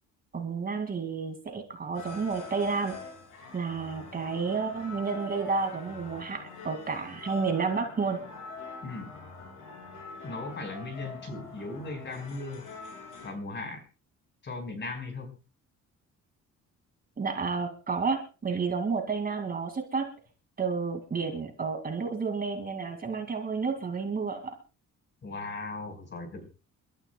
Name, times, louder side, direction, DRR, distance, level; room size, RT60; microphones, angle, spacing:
voice 1, 0.3-2.9 3.5-8.2 17.2-20.0 20.6-24.4, right 5 dB, 30° right, 5 dB, 2.3 m, -31 dB
sound 1, 1.9-13.3, left 4 dB, 75° left, 6.1 m, -45 dB
voice 2, 8.8-9.2 10.2-12.7 13.2-13.8 14.4-15.4 25.2-26.5, left 3 dB, 35° left, 5 dB, 4.8 m, -38 dB
29.5 x 13.0 x 2.3 m, 0.33 s
cardioid pair, 170°, 32 cm